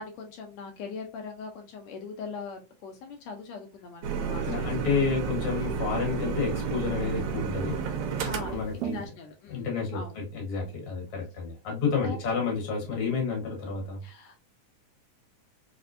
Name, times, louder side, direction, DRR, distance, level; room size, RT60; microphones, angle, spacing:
voice 1, 0.0-4.7 8.3-10.2 12.0-12.2 14.0-14.5, left 4 dB, 85° left, 3 dB, 1.6 m, -41 dB
sound 1, 4.0-9.1, right 6 dB, 75° right, 1.8 m, -31 dB
voice 2, 4.3-7.9 8.5-9.0 9.5-14.0, left 5 dB, 55° left, -1 dB, 1.9 m, -30 dB
5.0 x 2.1 x 2.5 m, 0.29 s
omnidirectional pair, 3.6 m